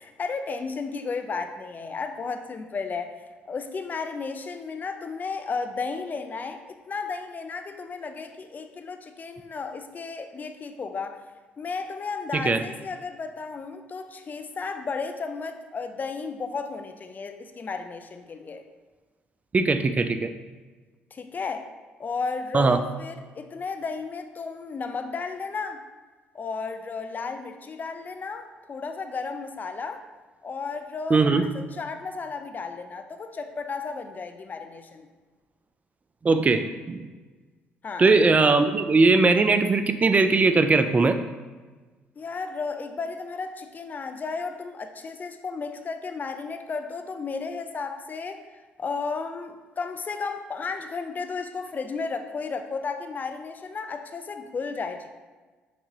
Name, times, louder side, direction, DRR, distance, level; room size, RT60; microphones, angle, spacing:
voice 1, 0.0-3.1 3.5-11.2 11.6-18.6 21.1-21.7 22.0-25.8 26.3-30.0 30.4-35.1 37.8-38.1 42.2-48.4 48.8-55.1, left 4 dB, 35° left, 7 dB, 0.5 m, -33 dB
voice 2, 19.5-20.3 22.5-22.8 31.1-31.4 36.2-37.0 38.0-41.2, right 3 dB, 30° right, 9 dB, 0.4 m, -20 dB
5.9 x 2.6 x 3.0 m, 1.3 s
hypercardioid pair, 60°, 5 cm